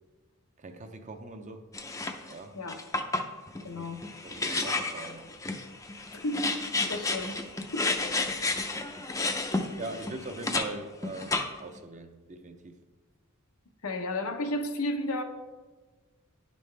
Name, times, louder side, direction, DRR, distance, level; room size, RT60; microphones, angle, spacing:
voice 1, 0.6-1.6 2.3-2.6 3.6-3.9 4.2-5.3 8.3-8.8 9.5-12.8, right 2 dB, 35° right, 7 dB, 0.6 m, -42 dB
sound 1, 1.7-2.3 2.7-10.7 11.0-11.8, left 3 dB, 15° left, 0.5 m, -31 dB
voice 2, 3.6-4.0 6.1-6.5 6.9-7.4 7.7-7.9 13.8-15.2, left 1 dB, 85° left, 4 dB, 0.9 m, -32 dB
10.5 x 5.4 x 3.3 m, 1.3 s
head